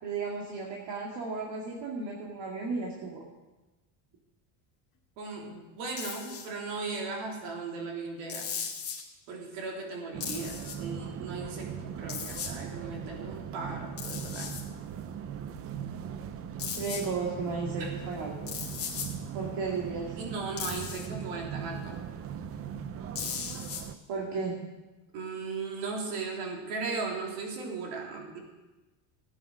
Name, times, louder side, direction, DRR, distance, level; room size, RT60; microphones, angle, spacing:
voice 1, 0.0-3.2 16.8-18.5 19.3-20.2 24.1-24.6, right 4 dB, 55° right, -1 dB, 2.3 m, -34 dB
voice 2, 5.2-8.6 9.3-14.5 17.8-17.9 20.2-22.0 25.1-28.4, right 4 dB, 75° right, 0 dB, 3.7 m, -37 dB
sound 1, 6.0-6.5 8.3-9.0 10.2-10.8 12.1-12.5 14.0-14.6 16.6-17.1 18.5-19.1 20.6-21.1 23.2-23.8, left 7 dB, 30° left, 2.2 m, -37 dB
sound 2, 10.1-23.9, right 8 dB, 30° right, 0.5 m, -39 dB
14.5 x 9.1 x 6.4 m, 1.1 s
cardioid pair, 150°, 50 cm